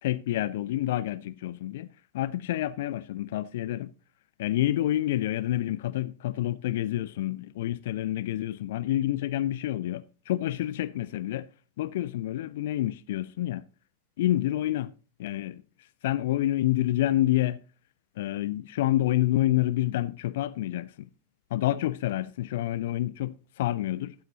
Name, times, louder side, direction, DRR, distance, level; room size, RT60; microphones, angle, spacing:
voice 1, 0.0-1.9 2.1-3.9 4.4-11.5 11.8-13.6 14.2-14.9 15.2-15.6 16.0-17.6 18.2-21.1 21.5-24.1, left 14 dB, 55° left, 0.4 m, -28 dB
14.0 x 9.0 x 2.9 m
figure-of-eight pair, 90°, 0 cm